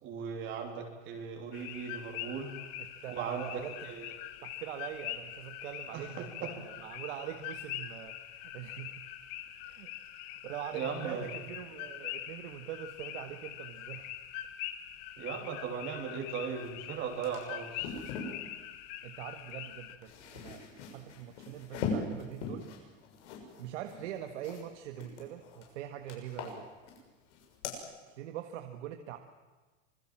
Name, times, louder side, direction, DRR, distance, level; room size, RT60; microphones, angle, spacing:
voice 1, 0.0-2.5 3.1-3.4 3.9-4.1 5.9-6.3 10.7-11.2 15.2-17.9, right 6 dB, 30° right, 2 dB, 3.3 m, -38 dB
sound 1, 1.5-20.0, left 12 dB, 40° left, 1.7 m, -43 dB
voice 2, 2.8-3.9 4.4-9.0 9.6-9.9 10.3-14.2 19.0-22.7 23.6-26.7 28.1-29.2, right 11 dB, 65° right, 6 dB, 1.8 m, -43 dB
sound 2, 16.7-16.8 17.0-18.4 19.7-24.6 25.0-25.7 26.1-27.0 27.3-27.8, left 4 dB, 65° left, 6.8 m, -40 dB
26.5 x 21.0 x 7.6 m, 1.3 s
supercardioid pair, 165°, 37 cm